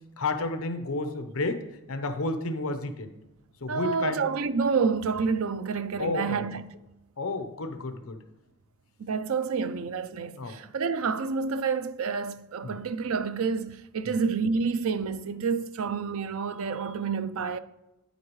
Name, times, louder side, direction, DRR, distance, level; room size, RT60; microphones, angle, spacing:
voice 1, 0.2-1.6 1.9-3.1 3.6-4.2 6.0-6.4 7.2-8.2 10.3-10.5 12.6-12.8 14.1-14.2, left 2 dB, 70° left, 0.8 m, -31 dB
voice 2, 3.7-6.6 9.0-17.6, right 5 dB, 70° right, 0.5 m, -28 dB
9.5 x 8.2 x 3.1 m
head